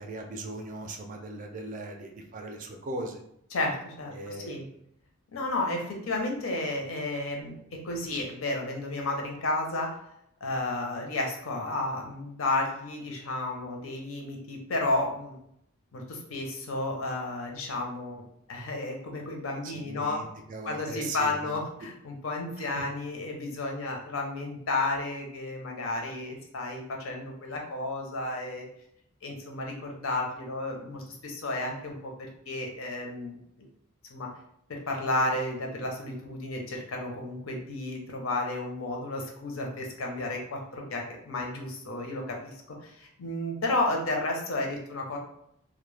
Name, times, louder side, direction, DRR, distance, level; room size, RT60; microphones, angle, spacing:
voice 1, 0.0-3.2 4.1-4.7 19.6-21.6 22.6-22.8, right 2 dB, 40° right, 4 dB, 0.3 m, -39 dB
voice 2, 3.5-4.7 5.3-9.9 10.4-15.4 15.9-18.2 18.5-20.2 20.6-28.7 29.2-32.1 32.5-33.7 34.1-34.3 34.7-45.2, left 2 dB, 80° left, 1 dB, 0.6 m, -32 dB
2.1 x 2.0 x 3.1 m, 0.73 s
head